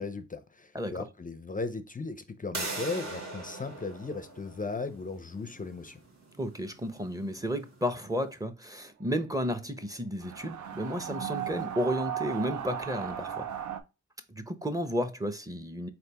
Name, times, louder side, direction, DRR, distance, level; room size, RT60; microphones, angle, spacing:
voice 1, 0.0-6.0, left 3 dB, 30° left, 0.5 m, -37 dB
voice 2, 0.7-1.1 6.4-13.5 14.3-15.9, equal, 10° right, 0.7 m, -32 dB
sound 1, 2.5-8.1, right 2 dB, 65° right, 1.5 m, -42 dB
sound 2, 10.2-13.8, right 9 dB, 80° right, 0.5 m, -36 dB
4.1 x 3.3 x 2.8 m
cardioid pair, 70°, 29 cm